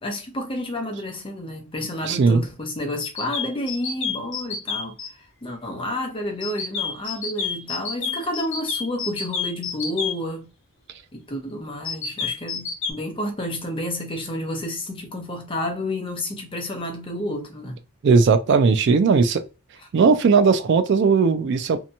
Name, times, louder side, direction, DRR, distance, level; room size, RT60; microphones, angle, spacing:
voice 1, 0.0-10.5 11.1-17.8, left 1 dB, 25° left, 0.7 m, -30 dB
voice 2, 2.0-2.4 8.0-8.1 18.0-19.4 19.9-21.8, right 5 dB, 55° right, 0.3 m, -17 dB
sound 1, 3.0-5.1 6.4-10.1 11.8-12.9, left 6 dB, 60° left, 0.8 m, -28 dB
2.8 x 2.2 x 2.6 m
head